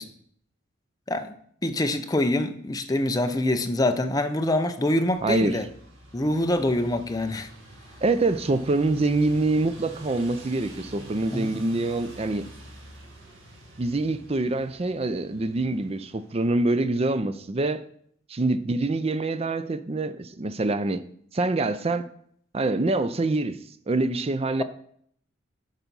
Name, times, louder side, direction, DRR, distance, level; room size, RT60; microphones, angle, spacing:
voice 1, 1.6-5.7 6.1-7.5 11.3-11.5, left 1 dB, 20° left, 0.6 m, -25 dB
sound 1, 5.1-16.8, right 1 dB, 70° right, 1.7 m, -47 dB
voice 2, 5.2-5.6 8.0-12.5 13.8-17.8 18.3-21.0 21.3-22.1 22.5-23.6 23.9-24.6, right 2 dB, 30° right, 0.4 m, -25 dB
10.5 x 4.1 x 5.4 m
head